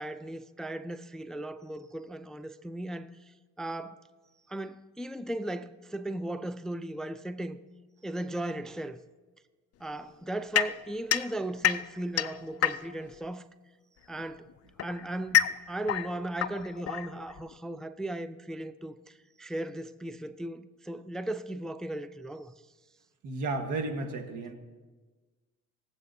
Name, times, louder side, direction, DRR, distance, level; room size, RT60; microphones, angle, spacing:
voice 1, 0.0-4.0 4.5-7.6 8.0-9.0 9.8-13.4 14.1-14.5 14.8-22.5, right 1 dB, ahead, 0.3 m, -37 dB
sound 1, 10.6-13.2 14.2-17.5, left 11 dB, 55° left, 0.5 m, -29 dB
voice 2, 23.2-24.5, right 3 dB, 80° right, 1.5 m, -33 dB
20.0 x 7.6 x 2.7 m
cardioid pair, 90°, 30 cm